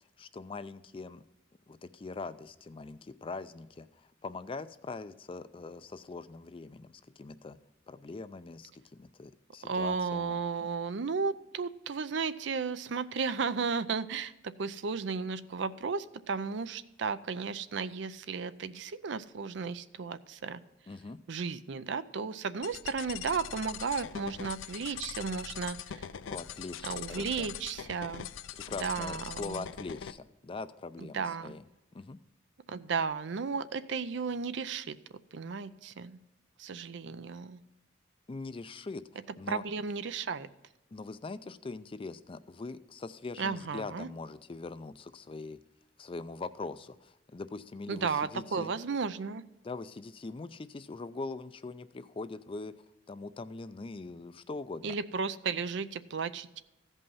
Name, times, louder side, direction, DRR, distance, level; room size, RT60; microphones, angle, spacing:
voice 1, 0.2-1.2 1.7-7.6 7.9-10.4 20.9-21.2 26.3-27.5 28.5-31.6 31.9-32.2 38.3-39.0 39.4-39.6 40.9-45.6 46.0-48.7 49.6-52.7 53.1-54.9, left 3 dB, 30° left, 13 dB, 0.4 m, -42 dB
voice 2, 9.6-20.6 21.3-26.1 26.8-28.3 28.7-29.6 31.0-31.5 32.7-35.0 35.3-36.2 36.6-37.6 39.5-40.5 43.4-44.1 47.9-49.4 54.8-56.6, right 5 dB, 65° right, 14 dB, 0.5 m, -34 dB
sound 1, 22.6-30.1, left 8 dB, 85° left, 0.4 m, -42 dB
15.0 x 5.4 x 5.6 m, 0.99 s
head